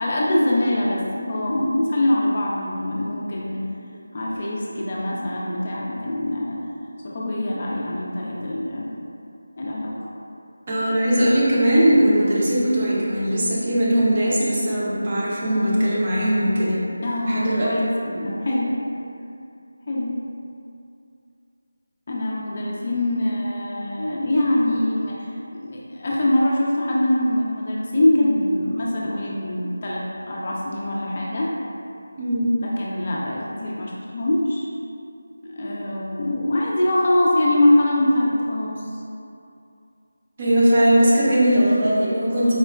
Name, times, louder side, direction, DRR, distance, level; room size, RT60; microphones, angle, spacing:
voice 1, 0.0-3.6 4.1-6.6 7.0-8.9 9.6-10.0 17.0-18.8 19.9-20.1 22.1-31.5 32.6-34.7 35.4-38.8, left 1 dB, 40° left, -4 dB, 0.4 m, -23 dB
voice 2, 10.7-16.8 17.3-17.7 32.2-32.6 40.4-42.5, equal, 30° right, -7 dB, 0.6 m, -19 dB
4.2 x 2.1 x 2.4 m, 2.6 s
figure-of-eight pair, 165°, 0 cm